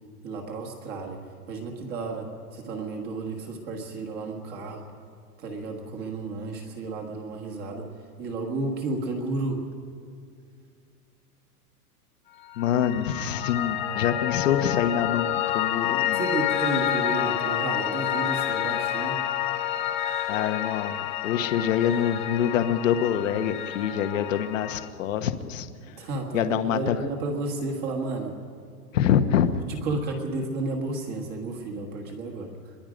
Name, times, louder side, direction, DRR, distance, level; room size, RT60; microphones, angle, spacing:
voice 1, 0.2-1.2 1.5-4.8 5.4-7.9 8.2-9.6 16.1-19.2 25.9-28.4 29.7-32.7, right 3 dB, 20° right, 2 dB, 1.6 m, -32 dB
Piano, 12.5-24.9, left 11 dB, 30° left, 0.9 m, -29 dB
voice 2, 12.6-16.2 20.3-21.0 21.2-26.0 26.3-27.0 28.9-29.5, left 9 dB, 55° left, 9 dB, 1.2 m, -25 dB
24.0 x 22.0 x 5.2 m, 2.2 s
supercardioid pair, 180°, 46 cm